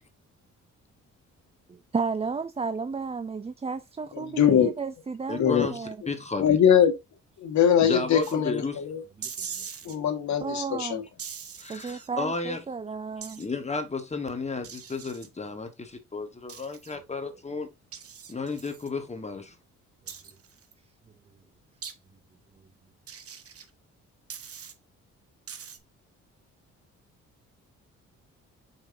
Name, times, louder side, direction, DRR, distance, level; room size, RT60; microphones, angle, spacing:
voice 1, 1.7-6.0 9.2-9.7 10.4-11.0 11.7-13.4, right 5 dB, 20° right, 0.5 m, -33 dB
voice 2, 4.1-4.7 5.4-5.7 6.4-6.9 7.4-9.0 9.8-11.0, left 8 dB, 65° left, 1.7 m, -22 dB
voice 3, 5.3-6.6 7.8-8.8 11.6-12.6 13.4-17.7 18.3-19.5, left 4 dB, 20° left, 1.4 m, -33 dB
sound 1, 8.2-8.4 9.2-10.0 11.2-12.1 13.2-13.5 14.6-15.3 16.5-17.0 17.9-18.9 20.1-20.7 21.8-21.9 23.1-23.7 24.3-24.7 25.5-25.8, right 7 dB, 50° right, 1.3 m, -41 dB
7.1 x 5.8 x 2.7 m
cardioid pair, 90°, 30 cm